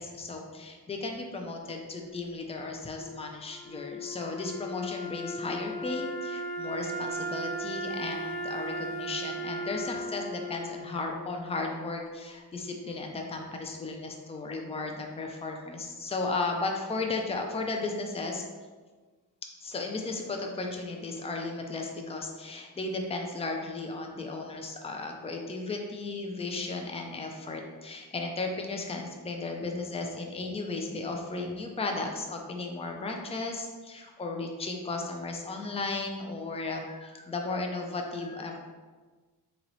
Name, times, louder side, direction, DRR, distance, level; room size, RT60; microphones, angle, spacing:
voice 1, 0.0-18.5 19.6-38.6, left 3 dB, 15° left, 2 dB, 0.4 m, -35 dB
Wind instrument woodwind instrument, 3.0-12.0, equal, 85° left, 0.7 m, -37 dB
3.0 x 2.9 x 3.9 m, 1.4 s
wide cardioid pair, 100°, 39 cm